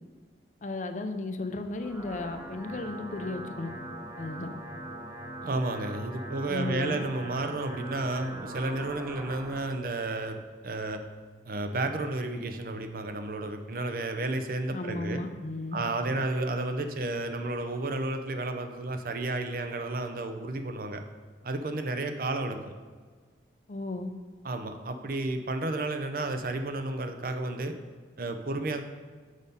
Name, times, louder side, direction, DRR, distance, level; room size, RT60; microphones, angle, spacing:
voice 1, 0.6-3.7 4.2-4.5 6.5-7.0 14.7-15.8 23.7-24.1, left 2 dB, 45° left, 7 dB, 0.5 m, -34 dB
sound 1, 1.6-9.6, right 1 dB, 15° right, 0.8 m, -42 dB
voice 2, 5.4-10.4 10.6-11.0 11.5-15.2 15.7-21.0 21.4-22.7 24.4-27.7 28.2-28.8, right 2 dB, 50° right, 7 dB, 0.6 m, -32 dB
6.4 x 5.4 x 5.2 m, 1.5 s
head